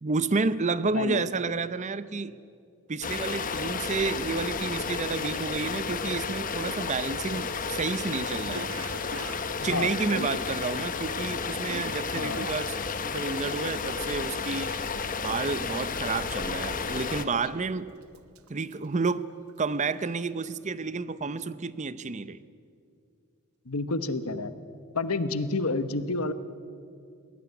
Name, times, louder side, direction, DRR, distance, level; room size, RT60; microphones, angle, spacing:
voice 1, 0.0-2.3 2.9-8.8 9.6-12.8 13.0-14.8 15.2-17.9 18.5-19.2 19.6-22.4, right 4 dB, 35° right, 0.6 m, -30 dB
voice 2, 0.9-1.2 9.7-10.3 12.1-12.5 23.7-24.5 24.9-26.3, left 3 dB, 80° left, 1.1 m, -29 dB
sound 1, 3.0-17.3, left 5 dB, 40° left, 1.1 m, -32 dB
Cough, 6.3-6.4 6.7-11.1 11.4-15.2 15.5-15.9 16.1-16.6 17.1-17.7 18.0-19.7 20.0-20.3, right 3 dB, 80° right, 1.1 m, -46 dB
22.0 x 17.5 x 9.2 m
head